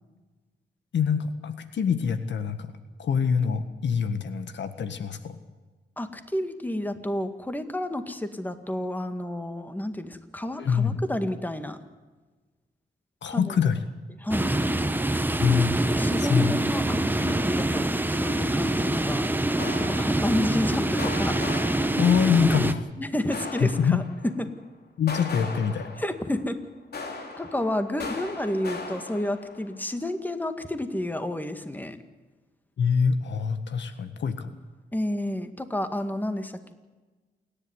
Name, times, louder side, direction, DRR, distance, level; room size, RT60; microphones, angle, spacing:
voice 1, 0.9-2.7 3.0-5.4 10.6-11.0 13.2-13.8 15.4-15.7 16.2-16.6 22.0-22.9 23.6-24.0 25.0-25.9 32.8-34.5, left 6 dB, 75° left, 10 dB, 1.6 m, -24 dB
voice 2, 6.0-11.8 13.3-13.5 14.2-14.6 16.0-19.3 19.9-21.4 23.0-24.5 26.0-26.6 27.4-32.0 34.9-36.7, left 1 dB, 10° left, 9 dB, 2.0 m, -30 dB
sound 1, 14.3-22.7, right 1 dB, 10° right, 1.2 m, -25 dB
sound 2, 18.7-19.2 19.6-20.7 21.0-22.6 23.3-24.5 25.1-26.6 26.9-29.8, left 3 dB, 60° left, 3.6 m, -38 dB
28.5 x 11.0 x 9.8 m, 1.2 s
cardioid pair, 85°, 19 cm